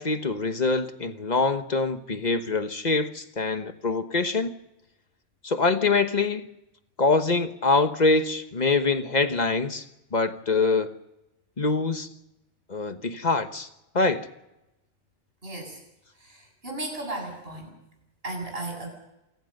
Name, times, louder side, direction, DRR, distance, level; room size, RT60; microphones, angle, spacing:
voice 1, 0.0-4.5 5.4-6.5 7.0-9.8 10.1-10.9 11.6-12.1 12.7-13.7 13.9-14.3, left 3 dB, 35° left, 9 dB, 1.4 m, -24 dB
voice 2, 15.4-15.8 16.2-17.7 18.2-18.9, right 2 dB, 55° right, 2 dB, 7.8 m, -35 dB
28.0 x 17.0 x 6.6 m, 0.89 s
omnidirectional pair, 1.2 m